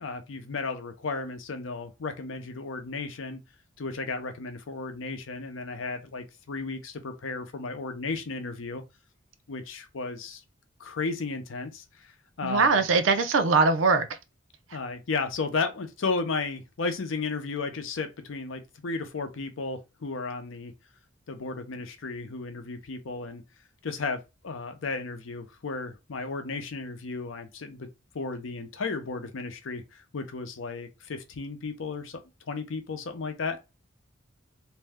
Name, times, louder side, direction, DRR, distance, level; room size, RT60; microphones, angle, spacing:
voice 1, 0.0-3.4 3.8-8.8 9.5-10.4 10.8-12.1 12.4-12.8 14.7-20.7 21.3-23.4 23.8-27.9 28.1-32.2 32.5-33.6, left 4 dB, 80° left, 0.6 m, -34 dB
voice 2, 12.4-14.1, right 4 dB, 75° right, 0.5 m, -21 dB
2.6 x 2.1 x 3.4 m
head